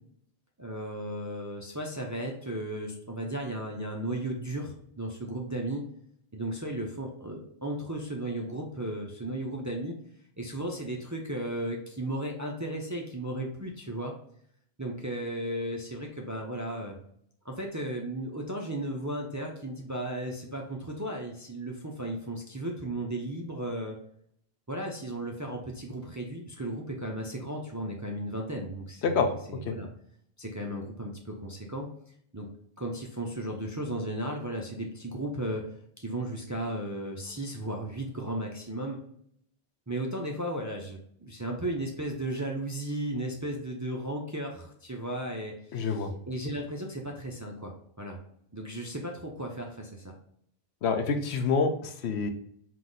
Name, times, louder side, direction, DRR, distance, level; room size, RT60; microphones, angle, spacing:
voice 1, 0.6-5.8 6.3-9.9 10.4-14.1 14.8-17.0 17.4-24.0 24.7-29.9 30.4-31.9 32.3-32.5 32.8-35.6 36.0-39.0 39.9-48.2 48.5-50.1, right 1 dB, 25° right, 0 dB, 0.4 m, -35 dB
voice 2, 45.7-46.1 50.8-52.3, left 5 dB, 80° left, 7 dB, 0.9 m, -27 dB
3.8 x 3.0 x 3.9 m, 0.66 s
omnidirectional pair, 1.1 m